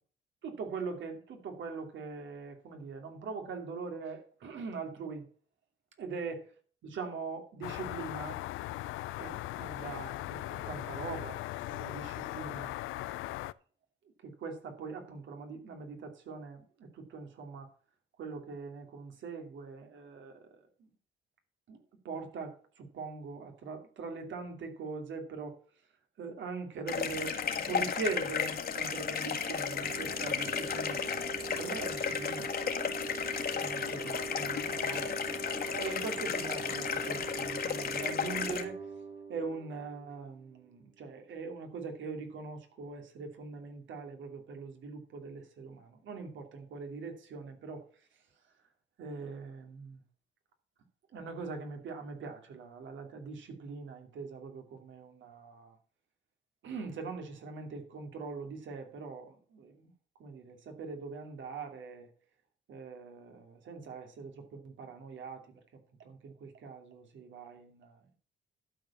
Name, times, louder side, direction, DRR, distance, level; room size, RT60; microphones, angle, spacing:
voice 1, 0.4-5.3 6.0-6.4 6.8-8.4 9.2-11.4 11.7-12.7 14.2-17.7 18.2-20.4 21.7-21.8 22.0-25.6 26.2-27.4 27.7-31.0 31.6-32.6 33.6-38.8 39.3-47.8 49.0-50.0 51.1-55.7 56.6-59.9 60.2-62.1 62.7-65.4 66.0-68.0, right 4 dB, 70° right, 2.7 m, -42 dB
sound 1, 7.6-13.5, left 16 dB, 90° left, 0.5 m, -39 dB
sound 2, 26.9-38.6, left 7 dB, 50° left, 1.8 m, -34 dB
sound 3, 29.2-40.7, right 5 dB, 50° right, 3.5 m, -43 dB
12.0 x 4.9 x 7.2 m
cardioid pair, 90°, 20 cm